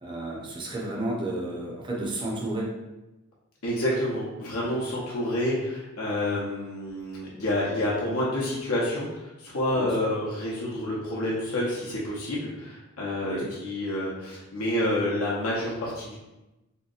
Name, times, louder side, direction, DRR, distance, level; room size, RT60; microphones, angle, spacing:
voice 1, 0.0-2.7 9.7-9.9 13.2-13.5, right 2 dB, 20° right, -3 dB, 0.6 m, -32 dB
voice 2, 3.6-16.2, left 1 dB, 75° left, -6 dB, 0.7 m, -28 dB
3.6 x 2.8 x 2.4 m, 1.0 s
head